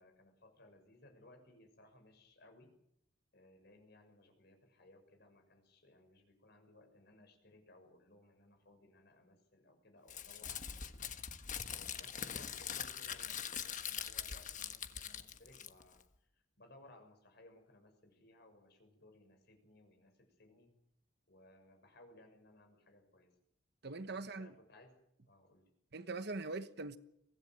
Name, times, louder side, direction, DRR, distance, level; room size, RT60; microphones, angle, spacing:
voice 1, 0.0-2.7 3.3-11.1 11.7-20.7 21.3-23.3 24.1-25.0 25.2-25.7, left 1 dB, 55° left, 6.5 m, -62 dB
Crumpling crinkling, 10.1-16.0, left 8 dB, 40° left, 1.3 m, -43 dB
voice 2, 23.8-24.5 25.9-27.0, right 3 dB, 55° right, 1.2 m, -42 dB
24.0 x 17.5 x 7.9 m
head